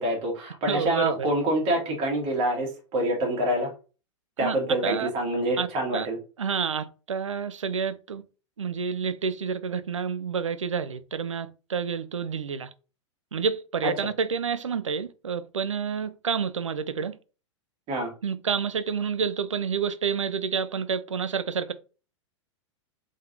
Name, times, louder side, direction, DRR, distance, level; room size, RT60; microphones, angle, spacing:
voice 1, 0.0-3.7 4.4-6.2 13.8-13.9 17.9-18.1, right 1 dB, 35° right, 1.8 m, -26 dB
voice 2, 0.7-1.1 4.4-4.6 4.8-5.1 5.6-5.7 5.9-6.1 6.4-8.2 8.6-12.7 13.3-17.2 18.2-21.7, right 6 dB, 75° right, 0.4 m, -29 dB
3.7 x 3.6 x 2.6 m
figure-of-eight pair, 100°, 16 cm